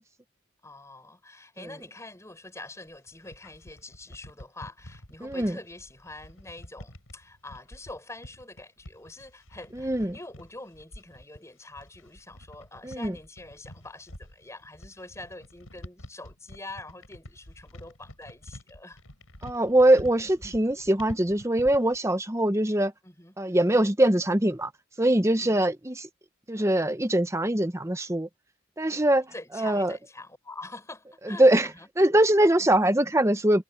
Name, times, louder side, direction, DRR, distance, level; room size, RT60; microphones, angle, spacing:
voice 1, 0.6-19.0 23.0-23.4 25.4-25.7 29.3-31.9 32.4-32.5, left 2 dB, 15° left, 5.1 m, -45 dB
sound 1, 2.9-22.0, left 1 dB, 80° left, 5.0 m, -47 dB
voice 2, 5.2-5.6 9.7-10.1 12.8-13.1 19.4-22.9 23.4-24.7 25.0-26.1 26.5-28.3 28.8-30.0 31.3-31.7 32.0-33.6, right 1 dB, 15° right, 0.9 m, -22 dB
head